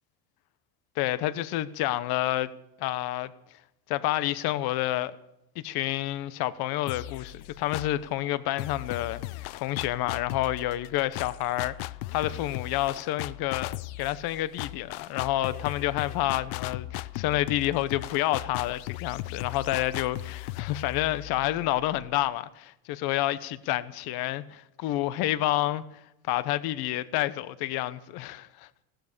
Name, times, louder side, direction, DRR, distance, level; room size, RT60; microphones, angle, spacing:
voice 1, 1.0-2.5 2.8-3.3 3.9-5.2 5.6-11.7 12.1-25.8 26.3-28.7, left 15 dB, 55° left, 1.0 m, -29 dB
sound 1, 6.9-8.1 8.6-22.3, left 18 dB, 80° left, 0.7 m, -38 dB
17.0 x 12.5 x 6.7 m
cardioid pair, 150°, 43 cm